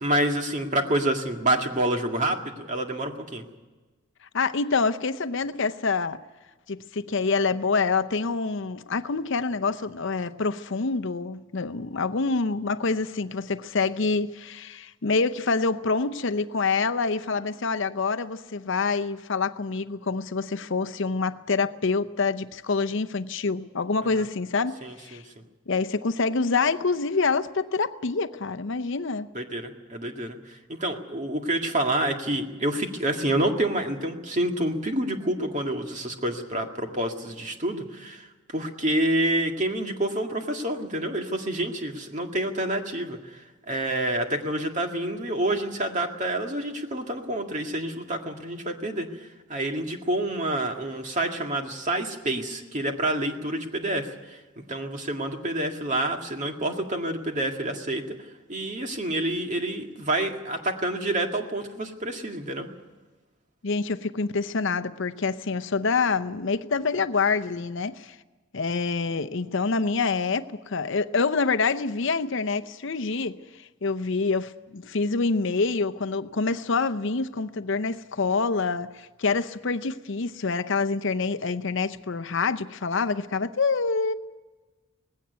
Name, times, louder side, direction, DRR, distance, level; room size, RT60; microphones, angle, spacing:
voice 1, 0.0-3.4 24.8-25.2 29.3-58.2 58.5-62.7, right 1 dB, 35° right, 2.0 m, -28 dB
voice 2, 4.3-6.2 6.7-25.2 25.7-29.3 63.6-68.2 68.5-84.1, left 4 dB, 55° left, 0.7 m, -26 dB
19.0 x 16.5 x 9.3 m
head